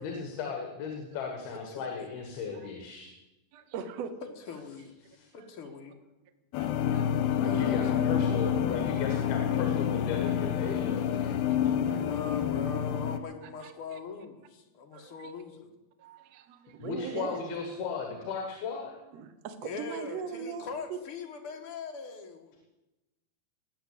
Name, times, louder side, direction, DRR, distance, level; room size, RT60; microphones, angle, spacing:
voice 1, 0.0-3.1 5.0-5.3 7.4-11.4 16.8-19.0, left 5 dB, 75° left, 2 dB, 3.5 m, -36 dB
voice 2, 1.7-2.1 4.5-4.9 5.3-5.9 7.4-8.4 12.0-15.7 19.6-22.6, left 4 dB, 55° left, 3 dB, 1.6 m, -41 dB
voice 3, 3.5-4.1 5.3-5.5 6.6-7.6 8.7-8.8 9.1-9.2 10.0-10.3 10.6-10.7 11.6-12.1 13.6-14.0 14.9-15.3 16.0-17.4 19.1-21.0, right 6 dB, 75° right, 10 dB, 1.5 m, -42 dB
sound 1, 6.5-13.2, left 9 dB, 90° left, 2.8 m, -28 dB
19.5 x 7.4 x 8.4 m, 1.0 s
omnidirectional pair, 4.6 m